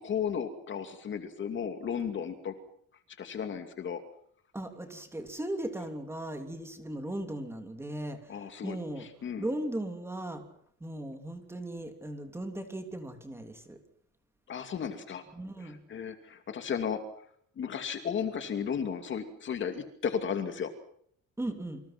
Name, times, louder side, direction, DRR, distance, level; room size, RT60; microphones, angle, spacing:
voice 1, 0.0-2.5 3.2-4.0 8.3-9.4 14.5-15.2 15.6-17.0 17.6-20.7, left 7 dB, 40° left, 7 dB, 2.5 m, -34 dB
voice 2, 4.5-9.1 9.4-10.4 10.8-13.8 15.3-15.8 21.4-21.8, right 1 dB, 10° right, 6 dB, 3.3 m, -37 dB
29.0 x 25.5 x 6.1 m, 0.64 s
cardioid pair, 180°, 31 cm